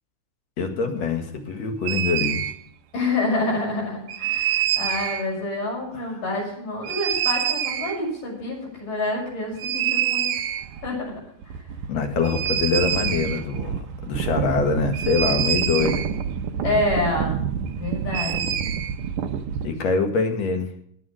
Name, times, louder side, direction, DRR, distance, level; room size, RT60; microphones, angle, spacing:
voice 1, 0.6-2.4 5.9-6.0 11.9-16.0 19.6-20.7, left 4 dB, 55° left, 5 dB, 2.9 m, -24 dB
sound 1, 1.9-2.5 4.1-5.2 6.8-8.0 9.6-10.9 11.2-11.3 11.4-19.7, right 9 dB, 80° right, 2.6 m, -26 dB
voice 2, 2.9-10.3 10.8-11.2 16.6-17.4 17.7-18.6, left 2 dB, 80° left, -2 dB, 8.6 m, -27 dB
18.0 x 8.6 x 5.0 m, 0.67 s
omnidirectional pair, 3.7 m